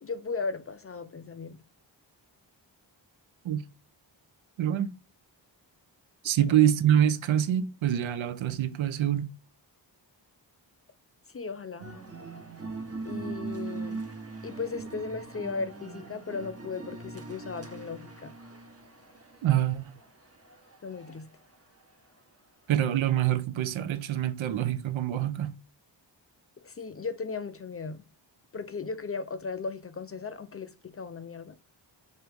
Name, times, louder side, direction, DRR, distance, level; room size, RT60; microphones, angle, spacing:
voice 1, 0.0-1.6 6.4-6.5 11.3-11.9 13.1-14.0 14.4-18.3 20.8-21.3 26.6-28.0 28.5-31.6, left 4 dB, 35° left, 0.4 m, -36 dB
voice 2, 4.6-4.9 6.2-9.3 19.4-19.9 22.7-25.6, right 10 dB, 85° right, 0.6 m, -25 dB
sound 1, 11.8-21.3, right 3 dB, 30° right, 0.9 m, -41 dB
4.5 x 2.7 x 3.4 m
wide cardioid pair, 95°, 45 cm